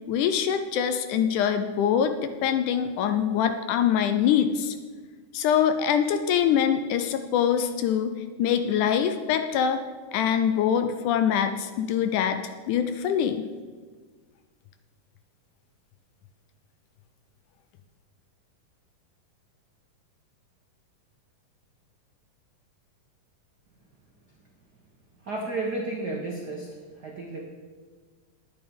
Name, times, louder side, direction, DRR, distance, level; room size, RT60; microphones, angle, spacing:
voice 1, 0.1-4.8 5.3-9.8 10.1-13.5, left 8 dB, 75° left, 8 dB, 1.9 m, -24 dB
voice 2, 25.2-27.4, right 2 dB, 75° right, -1 dB, 0.9 m, -32 dB
11.0 x 9.4 x 5.3 m, 1.5 s
omnidirectional pair, 3.9 m